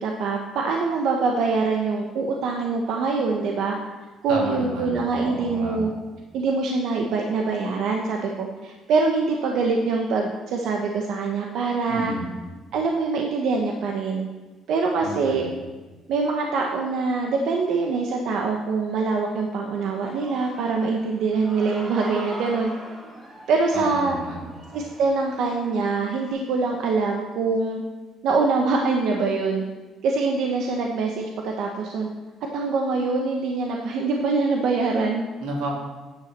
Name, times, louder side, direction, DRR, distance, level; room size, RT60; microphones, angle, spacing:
voice 1, 0.0-3.7 4.2-5.9 6.3-12.1 12.7-14.3 14.7-15.5 16.1-22.7 23.5-24.2 24.7-27.8 28.2-29.6 30.0-32.1 32.5-35.2, right 4 dB, 65° right, 1 dB, 1.1 m, -24 dB
voice 2, 4.3-5.8 11.9-12.3 15.0-15.6 23.7-24.6 35.4-35.7, right 2 dB, 90° right, -2 dB, 3.5 m, -31 dB
Human voice / Cheering, 19.7-26.3, right 1 dB, 20° right, 1.8 m, -42 dB
9.9 x 8.1 x 6.6 m, 1.3 s
cardioid pair, 165°, 0 cm